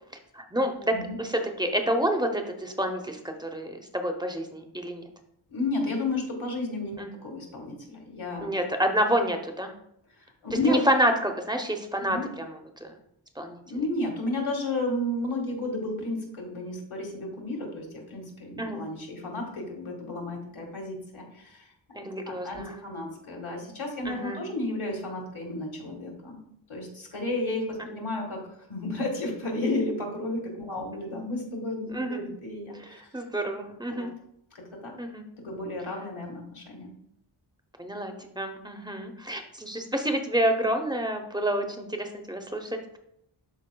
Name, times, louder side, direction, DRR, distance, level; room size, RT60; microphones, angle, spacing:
voice 1, 0.3-5.0 7.0-7.1 8.4-9.7 10.6-12.9 13.4-13.6 18.6-18.8 21.9-22.9 24.0-24.4 27.8-27.9 30.7-30.9 31.9-32.2 32.8-34.1 35.0-35.2 37.8-43.0, equal, 10° right, 5 dB, 0.8 m, -29 dB
voice 2, 5.5-8.5 10.2-10.8 12.0-12.3 13.7-26.4 26.7-28.4 28.7-33.0 33.9-34.1 34.5-34.9 35.4-36.9, left 2 dB, 75° left, 1 dB, 1.8 m, -32 dB
12.0 x 4.3 x 2.3 m, 0.75 s
wide cardioid pair, 80°, 49 cm